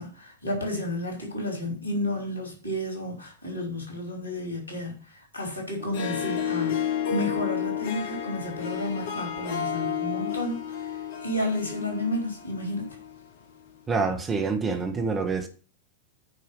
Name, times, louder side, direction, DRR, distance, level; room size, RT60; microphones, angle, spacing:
voice 1, 0.0-5.0 5.3-6.8 7.1-10.6 11.2-12.9, left 1 dB, 90° right, 5.2 m, -31 dB
Harp, 5.8-13.2, left 8 dB, 55° left, 1.1 m, -31 dB
voice 2, 13.9-15.5, right 4 dB, 20° right, 1.8 m, -26 dB
9.6 x 5.4 x 6.6 m
figure-of-eight pair, 90°, 0 cm